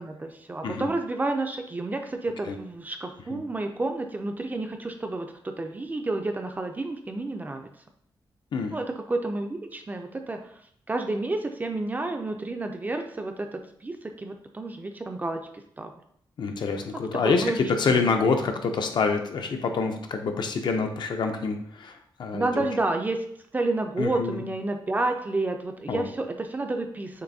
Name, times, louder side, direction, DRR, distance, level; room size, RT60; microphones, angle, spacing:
voice 1, 0.0-7.7 8.7-10.5 10.9-15.9 16.9-18.0 22.3-23.2 23.5-27.2, right 2 dB, 20° right, 5 dB, 0.3 m, -30 dB
voice 2, 16.4-22.6 24.0-24.4 25.9-26.1, left 4 dB, 60° left, 5 dB, 0.5 m, -26 dB
6.6 x 2.6 x 2.6 m, 0.69 s
wide cardioid pair, 180°, 9 cm